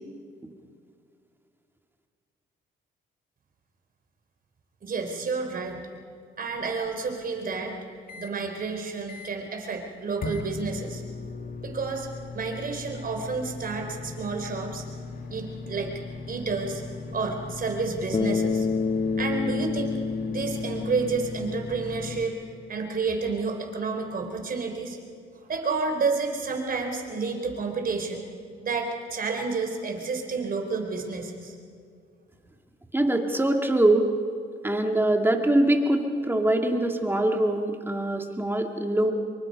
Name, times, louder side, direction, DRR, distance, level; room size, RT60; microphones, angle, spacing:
voice 1, 4.8-5.9 6.4-7.8 8.1-11.0 11.6-12.1 12.3-14.8 15.3-16.0 16.3-16.8 17.1-18.7 19.2-20.0 20.3-22.4 22.7-25.0 25.4-28.2 28.6-31.6, right 4 dB, 45° right, 3 dB, 4.1 m, -30 dB
sound 1, 6.6-8.3 8.8-8.9 9.1-9.5 10.2-22.3, left 3 dB, 45° left, 2.1 m, -39 dB
Bass guitar, 18.1-22.5, left 5 dB, 30° left, 1.0 m, -29 dB
voice 2, 32.9-34.1 34.6-39.1, right 1 dB, 10° right, 3 dB, 2.3 m, -23 dB
25.5 x 23.5 x 5.4 m, 2.3 s
cardioid pair, 90°, 20 cm